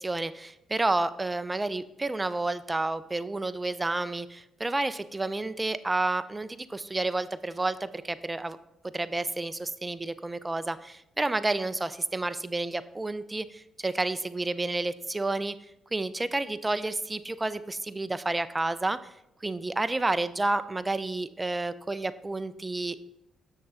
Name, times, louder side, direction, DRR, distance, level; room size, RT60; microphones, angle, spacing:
voice 1, 0.0-8.6 8.9-15.5 15.9-19.1 19.4-23.0, right 2 dB, 15° right, 13 dB, 0.4 m, -30 dB
6.9 x 6.5 x 3.7 m, 0.86 s
cardioid pair, 90°, 0 cm